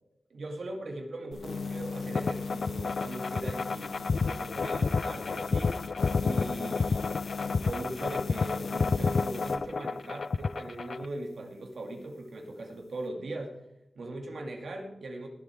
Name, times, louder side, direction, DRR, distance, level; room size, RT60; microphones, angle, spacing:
voice 1, 0.3-4.0 4.2-5.8 6.2-7.2 7.5-13.6 13.9-15.3, right 2 dB, 75° right, 2 dB, 2.5 m, -40 dB
sound 1, 1.3-9.6, left 4 dB, 80° left, 1.1 m, -39 dB
sound 2, 2.1-11.1, left 4 dB, 60° left, 0.4 m, -30 dB
21.0 x 7.8 x 3.7 m, 0.85 s
wide cardioid pair, 110°, 0 cm